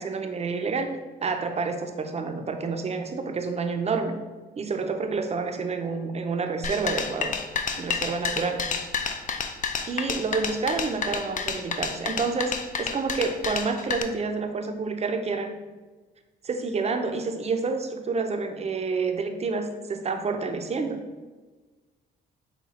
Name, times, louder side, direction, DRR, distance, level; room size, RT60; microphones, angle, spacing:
voice 1, 0.0-4.2 4.6-7.3 7.8-8.7 9.9-15.6 16.4-21.0, right 4 dB, 35° right, 5 dB, 0.5 m, -29 dB
sound 1, 6.6-14.0, left 6 dB, 40° left, 0.4 m, -30 dB
5.6 x 2.3 x 4.1 m, 1.3 s
cardioid pair, 90°, 20 cm